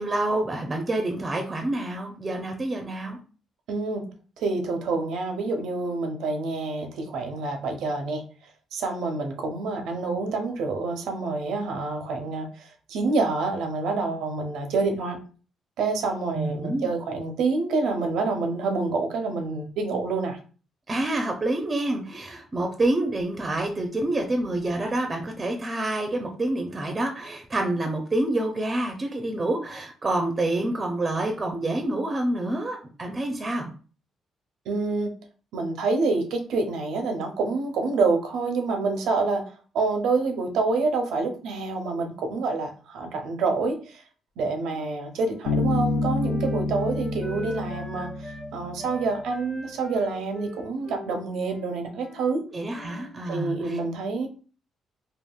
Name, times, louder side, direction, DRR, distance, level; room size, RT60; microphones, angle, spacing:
voice 1, 0.0-3.2 16.3-16.9 20.9-33.7 52.5-53.8, right 1 dB, 30° right, 4 dB, 0.5 m, -27 dB
voice 2, 3.7-4.0 4.4-8.2 8.7-15.2 15.8-20.4 34.7-35.1 35.5-44.0 44.4-52.4 53.3-54.3, right 3 dB, 85° right, 4 dB, 0.6 m, -27 dB
Wind instrument woodwind instrument, 44.6-48.5 48.8-52.3 52.6-53.2, equal, 20° left, 1.1 m, -43 dB
Bass guitar, 45.4-49.1, left 3 dB, 85° left, 0.4 m, -28 dB
3.5 x 2.3 x 2.3 m, 0.38 s
cardioid pair, 90°, 0 cm